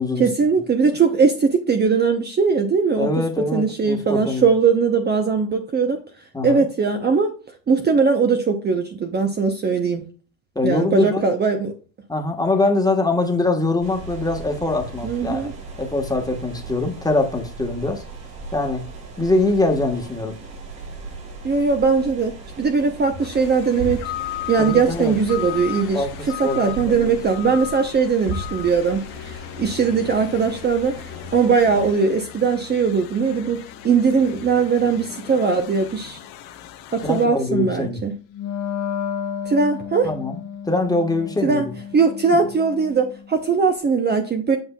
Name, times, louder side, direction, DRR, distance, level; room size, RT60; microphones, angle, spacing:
voice 1, 0.2-3.2 3.5-6.0 6.4-7.3 7.7-10.0 10.6-11.7 15.0-15.5 21.4-24.0 24.5-33.6 33.8-36.2 36.9-38.1 39.5-40.1 41.4-41.7 41.9-44.6, right 5 dB, 25° right, 5 dB, 0.8 m, -20 dB
voice 2, 3.0-4.5 6.3-6.6 10.5-11.2 12.1-15.5 15.8-18.0 18.5-18.8 19.2-20.3 24.6-25.1 25.9-26.1 26.4-27.1 27.4-27.5 37.0-38.0 40.0-40.4 40.7-41.7, left 2 dB, 10° left, 3 dB, 1.3 m, -23 dB
sound 1, 13.8-31.9, right 3 dB, 65° right, 3.2 m, -37 dB
sound 2, 23.2-37.3, left 12 dB, 75° left, 0.9 m, -36 dB
Wind instrument woodwind instrument, 38.3-43.4, left 7 dB, 55° left, 1.5 m, -32 dB
7.9 x 5.6 x 2.3 m, 0.38 s
supercardioid pair, 95°, 38 cm